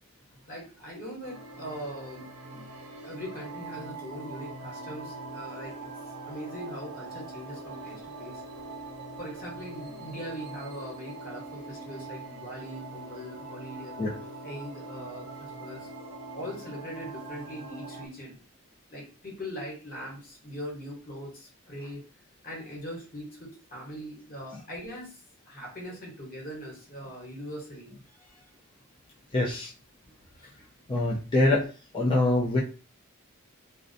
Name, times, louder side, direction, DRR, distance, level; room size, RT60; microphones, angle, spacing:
voice 1, 0.5-2.6 3.0-5.9 6.3-8.4 9.2-14.0 14.4-15.9 16.3-18.4 18.9-22.0 22.4-25.2 25.5-28.5 30.4-30.5, equal, 40° left, -3 dB, 1.0 m, -41 dB
sound 1, 1.2-18.1, right 2 dB, 80° right, 0.5 m, -42 dB
voice 2, 29.3-29.7 30.9-31.7 31.9-32.6, left 2 dB, 20° left, -4 dB, 0.4 m, -24 dB
2.5 x 2.0 x 2.6 m, 0.35 s
head